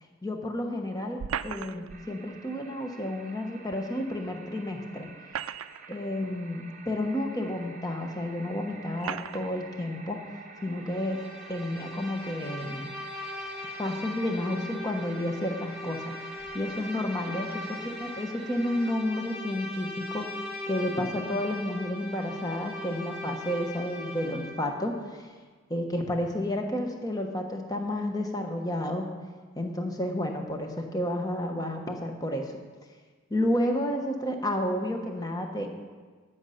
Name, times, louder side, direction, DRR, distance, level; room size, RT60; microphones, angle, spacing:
voice 1, 0.2-5.1 5.9-10.2 10.6-11.2 11.5-12.9 13.8-25.3 25.7-29.1 29.6-32.5 33.3-35.7, left 1 dB, 15° left, 3 dB, 1.1 m, -31 dB
sound 1, 1.2-2.0 3.7-3.8 5.1-6.0 6.9-7.0 7.9-8.0 9.0-9.5, right 8 dB, 80° right, 0.4 m, -36 dB
sound 2, 1.9-18.9, right 5 dB, 35° right, 0.8 m, -49 dB
Bowed string instrument, 10.8-24.7, left 1 dB, 5° right, 2.0 m, -40 dB
13.5 x 6.7 x 5.7 m, 1.5 s
head